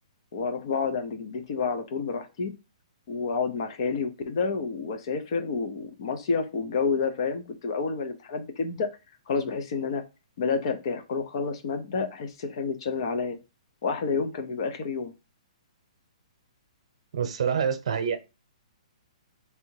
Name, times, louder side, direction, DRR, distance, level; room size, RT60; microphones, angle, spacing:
voice 1, 0.3-2.5 3.1-8.9 9.3-10.0 10.4-13.4 13.8-15.1, left 5 dB, 45° left, 8 dB, 0.7 m, -29 dB
voice 2, 17.1-18.2, right 7 dB, 55° right, 7 dB, 0.9 m, -26 dB
3.4 x 2.8 x 4.5 m, 0.27 s
hypercardioid pair, 165°, 4 cm